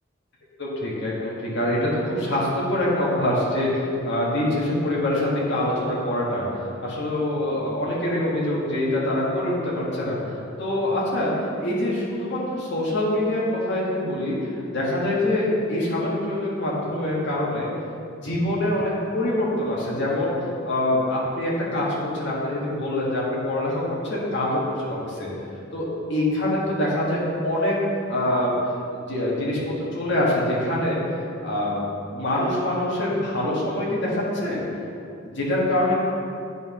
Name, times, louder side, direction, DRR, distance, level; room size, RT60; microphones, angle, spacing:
voice 1, 0.6-6.4 6.8-11.3 11.6-17.7 18.2-25.3 25.7-27.8 28.1-28.5 28.9-31.0 31.4-31.8 32.1-34.6 35.2-35.9, left 1 dB, 65° left, -5 dB, 1.7 m, -25 dB
9.3 x 5.5 x 3.1 m, 2.5 s
head